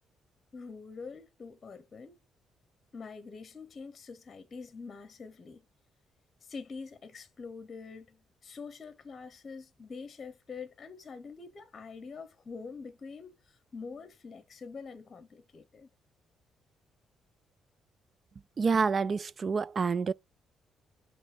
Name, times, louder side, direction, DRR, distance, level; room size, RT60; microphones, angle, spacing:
voice 1, 0.5-2.2 2.9-5.6 6.4-15.9, left 5 dB, 40° left, 1.1 m, -45 dB
voice 2, 18.6-20.1, right 5 dB, 40° right, 0.3 m, -28 dB
9.5 x 3.2 x 6.1 m
cardioid pair, 90°, 0 cm